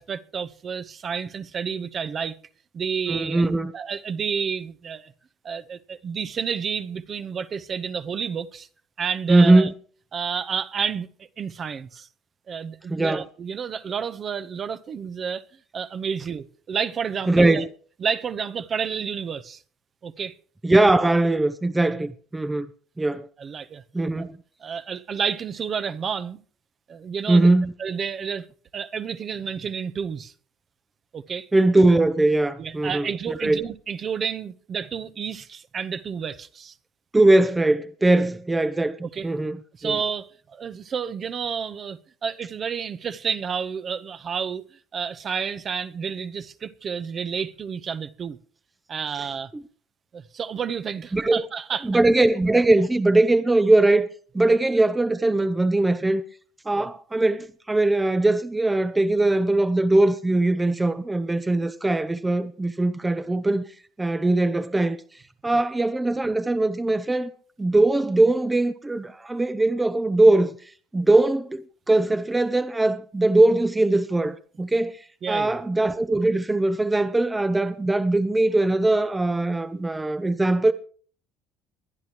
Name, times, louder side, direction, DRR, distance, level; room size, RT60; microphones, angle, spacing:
voice 1, 0.0-2.4 2.7-3.4 3.7-5.1 5.4-8.7 9.0-9.7 10.1-12.1 12.5-15.5 15.7-17.6 18.0-19.6 20.0-20.3 23.4-23.8 24.2-24.3 24.6-26.4 26.9-27.5 27.8-28.5 28.7-30.3 31.1-31.5 32.6-36.7 39.0-39.3 39.8-44.7 44.9-48.4 48.9-49.5 50.1-51.9 56.7-56.9 75.2-75.6, right 6 dB, 40° right, 1.0 m, -30 dB
voice 2, 3.1-3.7 9.3-9.7 12.9-13.2 17.3-17.7 20.6-22.7 23.0-23.3 23.9-24.3 27.3-27.7 31.5-33.6 37.1-40.0 49.5-49.6 51.1-51.4 51.8-54.1 54.3-56.2 56.7-63.6 64.0-65.0 65.4-67.3 67.6-70.6 70.9-80.7, right 2 dB, 15° right, 0.8 m, -21 dB
22.0 x 11.0 x 3.1 m
supercardioid pair, 95°, 0 cm